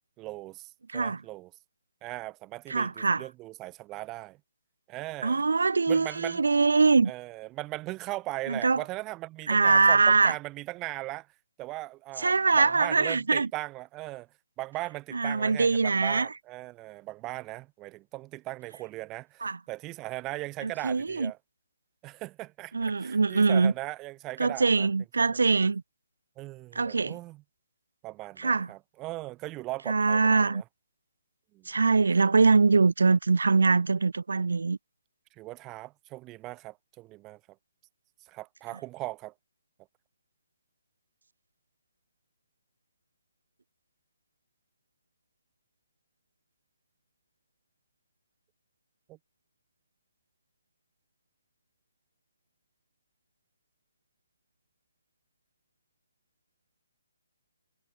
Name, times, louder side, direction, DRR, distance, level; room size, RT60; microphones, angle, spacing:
voice 1, 0.2-1.5 2.0-4.4 4.9-5.4 5.9-6.4 7.1-11.3 11.6-14.3 14.6-21.4 22.0-24.9 26.4-27.4 28.0-30.6 31.5-31.7 32.0-32.3 35.4-37.4 38.2-39.3 49.1-49.2, right 19 dB, 15° right, 2.8 m, -39 dB
voice 2, 2.7-3.2 5.2-7.1 8.5-8.8 9.5-10.3 12.2-13.5 15.1-16.3 19.4-19.6 20.6-21.3 22.7-23.7 24.4-25.8 26.7-27.2 28.4-28.7 29.9-30.6 31.7-34.8, right 4 dB, 85° right, 0.9 m, -23 dB
hypercardioid pair, 165°, 0 cm